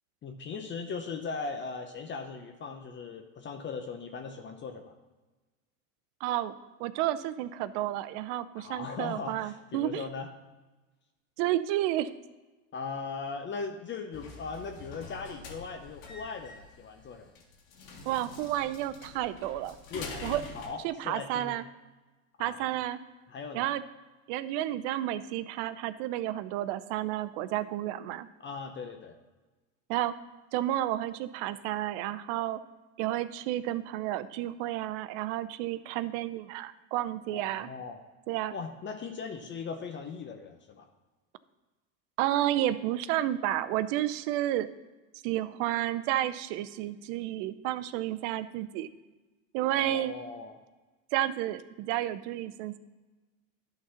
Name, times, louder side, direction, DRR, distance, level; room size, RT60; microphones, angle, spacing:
voice 1, 0.2-4.9 8.6-10.3 12.7-17.3 19.9-21.6 22.4-22.7 23.3-23.7 28.4-29.1 37.3-38.0 38.5-40.9 49.6-50.6, left 4 dB, 30° left, 5 dB, 0.7 m, -39 dB
voice 2, 6.2-6.5 6.8-10.1 11.4-12.1 18.1-19.8 20.2-20.4 20.8-21.6 22.4-23.0 23.5-23.8 24.3-28.3 29.9-30.1 30.5-32.6 33.0-37.7 38.3-38.6 42.2-44.7 45.2-48.9 49.5-50.1 51.1-52.8, right 13 dB, 65° right, 14 dB, 0.6 m, -31 dB
sound 1, 14.1-20.7, left 3 dB, 70° left, 2.0 m, -45 dB
11.0 x 4.0 x 5.7 m, 1.2 s
supercardioid pair, 105°, 38 cm